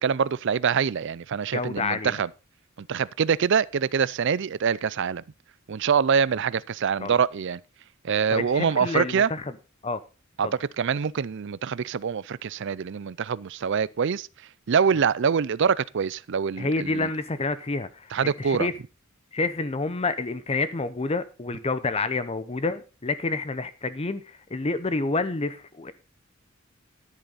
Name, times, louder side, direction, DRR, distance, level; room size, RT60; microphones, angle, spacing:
voice 1, 0.0-2.3 2.8-5.2 5.7-7.6 8.0-9.3 10.4-14.3 14.7-17.1 18.1-18.7, right 6 dB, 60° right, 0.4 m, -25 dB
voice 2, 1.5-2.2 7.0-7.2 8.3-9.5 9.8-10.0 10.4-10.5 16.6-18.7 19.3-25.9, left 3 dB, 30° left, 0.7 m, -28 dB
10.5 x 10.0 x 4.0 m
head